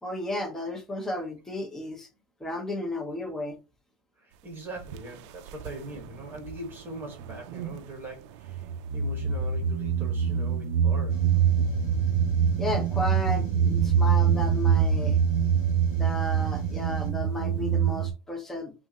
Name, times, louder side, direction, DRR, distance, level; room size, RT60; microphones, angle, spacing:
voice 1, 0.0-2.1 2.4-3.6 12.6-15.2 15.9-18.7, left 1 dB, 5° left, 0.6 m, -33 dB
voice 2, 4.2-11.5, right 1 dB, 15° right, 1.4 m, -42 dB
sound 1, 4.8-5.0 5.5-6.6 7.0-7.9 8.4-18.1, right 7 dB, 65° right, 0.4 m, -25 dB
sound 2, 11.1-17.1, left 3 dB, 40° left, 1.4 m, -45 dB
5.3 x 2.5 x 2.9 m
supercardioid pair, 170°, 16 cm